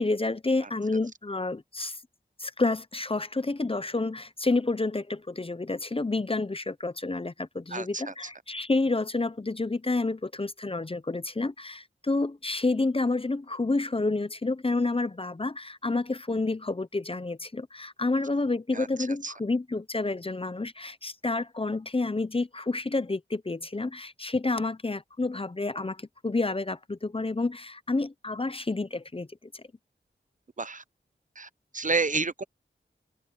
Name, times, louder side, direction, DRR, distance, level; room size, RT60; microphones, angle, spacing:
voice 1, 0.0-2.0 2.4-26.0 26.2-29.3, left 3 dB, 30° left, 0.7 m, -29 dB
voice 2, 7.7-8.1 18.7-18.9 19.2-19.3 30.6-30.8 31.4-31.5 31.7-32.4, right 4 dB, 40° right, 0.7 m, -29 dB
wide cardioid pair, 50°, 20 cm